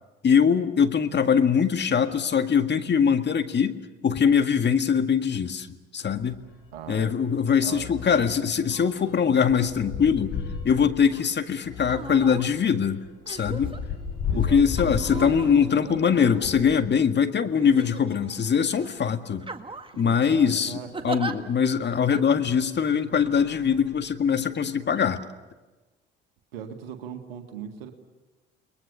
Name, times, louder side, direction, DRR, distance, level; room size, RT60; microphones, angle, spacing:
voice 1, 0.2-3.8 4.0-5.7 5.9-6.4 6.9-10.4 10.6-13.0 13.3-13.8 14.4-19.5 20.0-20.8 21.0-25.2, left 7 dB, 35° left, 8 dB, 1.9 m, -22 dB
sound 1, 6.1-7.0 7.7-9.0 9.7-11.0 11.6-12.8, left 8 dB, 15° left, 6.4 m, -46 dB
sound 2, 6.3-6.5 6.9-7.0 7.3-16.8 17.5-18.9 19.5-19.6 19.9-20.0 21.7-21.8 22.4-22.7 23.1-24.4, left 5 dB, 50° left, 7.1 m, -36 dB
voice 2, 6.7-7.1 7.6-7.9 8.2-8.3 14.3-14.6 19.9-21.1 26.5-27.9, right 8 dB, 80° right, 6 dB, 1.8 m, -39 dB
sound 3, 11.1-11.3 11.8-12.5 13.3-13.8 14.8-16.8 17.6-18.4 18.8-19.0 19.4-20.0 20.9-21.3 22.1-22.2, right 3 dB, 20° right, 2.0 m, -37 dB
30.0 x 21.5 x 6.9 m, 1.2 s
hypercardioid pair, 60°, 29 cm